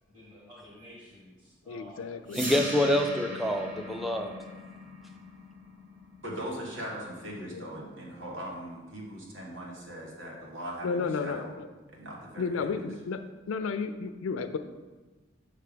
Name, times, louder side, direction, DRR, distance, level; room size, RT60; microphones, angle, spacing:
voice 1, 0.1-2.3, equal, 20° right, -8 dB, 1.2 m, -51 dB
voice 2, 1.7-2.4 7.5-7.7 10.8-11.7 12.4-13.2 13.5-14.6, left 5 dB, 85° left, 10 dB, 0.4 m, -32 dB
voice 3, 2.3-4.4, left 1 dB, ahead, 3 dB, 0.4 m, -26 dB
sound 1, 2.3-8.3, equal, 40° right, 1.2 m, -41 dB
voice 4, 6.2-11.5 11.9-12.8, right 1 dB, 70° right, -2 dB, 1.5 m, -40 dB
6.5 x 3.4 x 5.0 m, 1.2 s
head